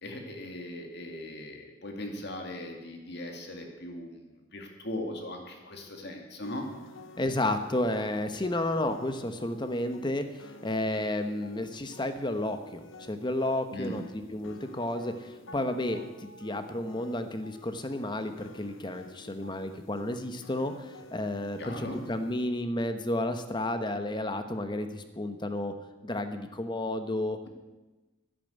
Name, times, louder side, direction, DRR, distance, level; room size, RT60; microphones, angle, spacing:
voice 1, 0.0-6.7 13.7-14.0 21.6-22.0, left 1 dB, 55° left, 3 dB, 2.3 m, -39 dB
sound 1, 6.4-22.4, left 2 dB, 80° left, 0.9 m, -51 dB
voice 2, 7.2-25.7 26.0-27.4, left 1 dB, 25° left, 9 dB, 1.0 m, -32 dB
11.0 x 11.0 x 8.1 m, 1.1 s
head